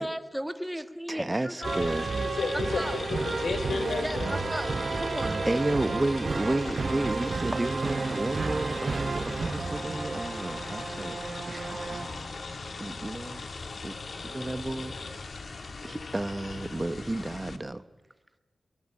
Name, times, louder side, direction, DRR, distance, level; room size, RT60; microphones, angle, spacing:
voice 1, 0.0-1.8 2.7-3.0 4.0-5.4, equal, 5° right, 1.7 m, -35 dB
voice 2, 1.1-2.1 5.5-12.3 12.8-13.4 13.8-13.9 14.2-14.9 15.8-17.8, right 2 dB, 20° right, 0.9 m, -32 dB
sound 1, 1.6-17.6, left 3 dB, 60° left, 1.9 m, -39 dB
sound 2, 1.6-12.2, right 4 dB, 50° right, 0.9 m, -32 dB
voice 3, 2.2-2.8 3.1-4.5 5.4-5.7, left 3 dB, 85° left, 4.3 m, -32 dB
22.5 x 21.5 x 8.7 m
wide cardioid pair, 125°, 0 cm